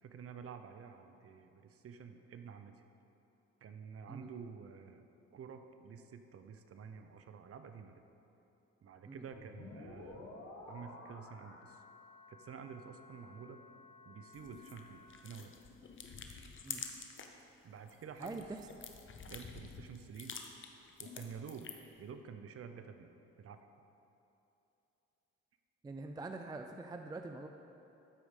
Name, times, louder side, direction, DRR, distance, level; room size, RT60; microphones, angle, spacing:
voice 1, 0.0-2.7 3.6-5.1 5.3-8.0 8.8-10.3 10.7-11.8 12.3-13.6 14.0-15.5 17.6-18.5 19.2-20.4 21.0-21.7 22.0-23.1 23.4-23.6, right 6 dB, 50° right, 8 dB, 0.7 m, -50 dB
sound 1, 9.3-15.0, left 2 dB, 60° left, 1.8 m, -53 dB
sound 2, 14.3-17.4 17.8-22.0, left 6 dB, 40° left, 0.8 m, -48 dB
voice 2, 25.8-27.5, right 3 dB, 15° right, 5 dB, 0.4 m, -44 dB
13.0 x 4.8 x 5.1 m, 2.9 s
cardioid pair, 90°, 30 cm